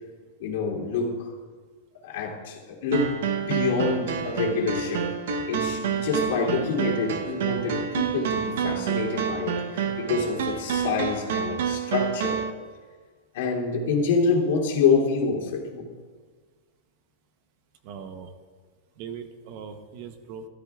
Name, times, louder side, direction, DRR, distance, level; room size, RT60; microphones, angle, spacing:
voice 1, 0.4-1.3 2.0-5.1 5.5-12.4 13.3-15.9, left 4 dB, 65° left, -3 dB, 2.8 m, -27 dB
sound 1, 2.9-12.5, right 7 dB, 70° right, 0.9 m, -28 dB
voice 2, 9.8-10.2 17.8-18.3 19.0-20.5, right 7 dB, 40° right, 8 dB, 0.8 m, -40 dB
16.5 x 13.0 x 2.4 m, 1.5 s
supercardioid pair, 170°, 0 cm